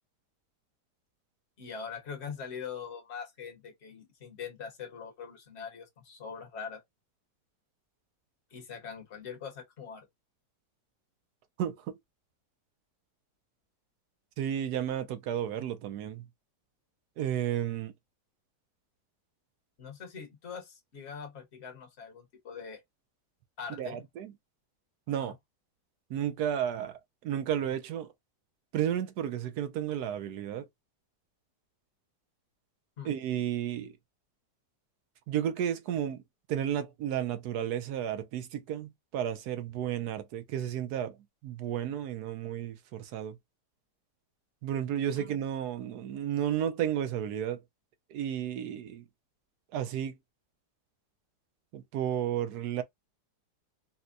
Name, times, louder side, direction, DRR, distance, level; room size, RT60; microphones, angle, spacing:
voice 1, 1.6-6.8 8.5-10.1 19.8-22.8 23.6-24.0 25.2-25.3 33.0-33.1 45.2-45.3, left 6 dB, 45° left, 1.2 m, -42 dB
voice 2, 11.6-12.0 14.4-16.3 17.2-17.9 23.7-24.3 25.1-25.4 26.1-28.1 28.7-30.7 33.0-33.9 35.3-36.2 36.5-41.2 41.4-43.4 44.6-47.6 48.1-49.0 49.7-50.2 51.7-52.8, right 10 dB, 70° right, 1.1 m, -32 dB
4.2 x 2.2 x 2.5 m
omnidirectional pair, 1.8 m